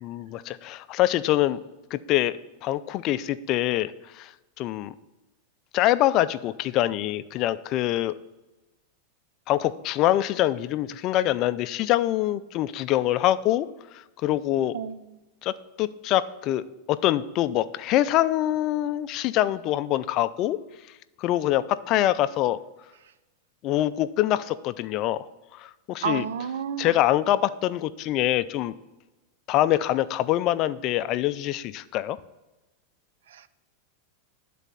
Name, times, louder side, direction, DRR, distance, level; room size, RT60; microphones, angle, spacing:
voice 1, 0.0-1.6 1.9-4.3 4.6-4.9 5.7-8.1 9.5-13.7 14.2-14.7 15.4-20.6 21.2-22.6 23.6-26.3 26.8-28.7 29.5-32.2, left 14 dB, 40° left, 14 dB, 0.4 m, -25 dB
voice 2, 26.0-26.9, right 8 dB, 85° right, 14 dB, 0.5 m, -30 dB
11.0 x 4.1 x 6.8 m, 1.1 s
supercardioid pair, 150°, 0 cm